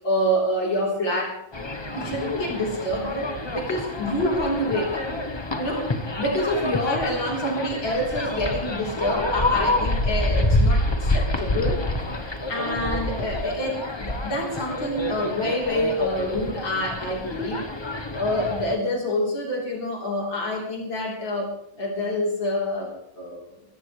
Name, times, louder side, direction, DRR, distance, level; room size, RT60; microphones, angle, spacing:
voice 1, 0.0-1.4 1.9-5.1 5.6-11.8 12.1-17.6 18.2-21.5 21.8-23.5, left 1 dB, 90° left, -2 dB, 4.5 m, -27 dB
sound 1, 1.5-18.8, left 1 dB, 25° left, 0.6 m, -27 dB
23.5 x 13.5 x 3.3 m, 0.73 s
omnidirectional pair, 2.1 m